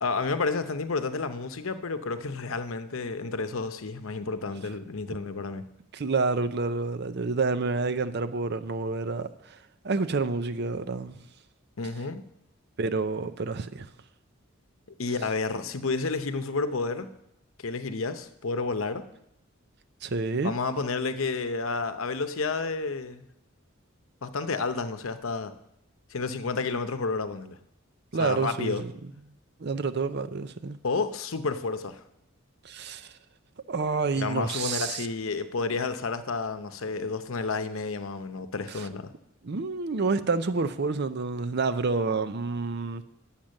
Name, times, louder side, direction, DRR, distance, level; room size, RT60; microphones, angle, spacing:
voice 1, 0.0-5.6 11.8-12.2 15.0-17.1 17.6-19.0 20.4-23.2 24.2-25.5 26.1-27.6 28.2-28.9 30.8-32.0 34.1-39.1, left 4 dB, 75° left, 0.8 m, -30 dB
voice 2, 5.9-9.6 9.8-11.2 12.8-13.9 20.0-20.5 28.1-28.9 29.6-30.8 32.6-33.1 33.7-35.1 38.7-38.9 39.4-43.0, right 4 dB, 50° right, 0.6 m, -28 dB
10.5 x 7.3 x 6.4 m
head